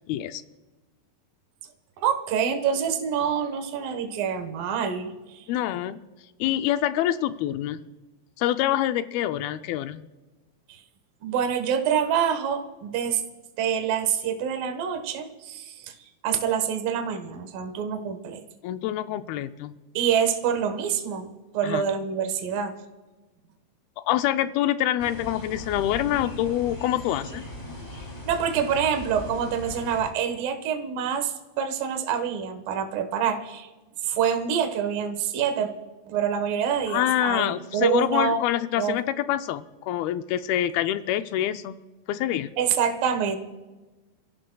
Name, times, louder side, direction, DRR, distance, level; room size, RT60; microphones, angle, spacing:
voice 1, 0.1-0.4 5.5-6.0 6.4-7.8 8.4-10.0 18.6-19.7 21.6-21.8 24.0-27.5 36.9-41.8 42.1-42.5, left 12 dB, 85° left, 10 dB, 2.4 m, -26 dB
voice 2, 2.0-5.4 10.7-10.8 11.2-13.2 13.6-15.9 16.2-18.4 19.9-22.8 28.3-33.7 34.0-35.7 36.1-38.4 38.8-39.0 42.6-43.4, right 8 dB, 70° right, 6 dB, 2.9 m, -26 dB
sound 1, 25.0-30.1, left 1 dB, 15° left, 2.0 m, -38 dB
29.0 x 15.5 x 2.3 m, 1.2 s
omnidirectional pair, 4.4 m